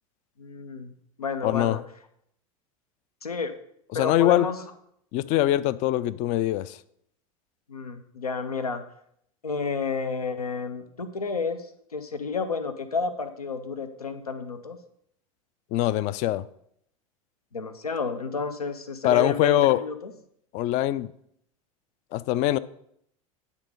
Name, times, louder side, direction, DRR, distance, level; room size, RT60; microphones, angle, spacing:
voice 1, 0.4-0.9 1.2-1.8 3.2-3.5 3.9-4.7 7.7-8.8 9.4-14.8 17.5-20.1, left 4 dB, 90° left, 0.6 m, -31 dB
voice 2, 1.4-1.8 4.0-4.5 5.1-6.8 15.7-16.4 19.0-19.8 20.5-21.1 22.1-22.6, left 13 dB, 40° left, 0.4 m, -23 dB
9.7 x 3.6 x 5.2 m
figure-of-eight pair, 85°, 19 cm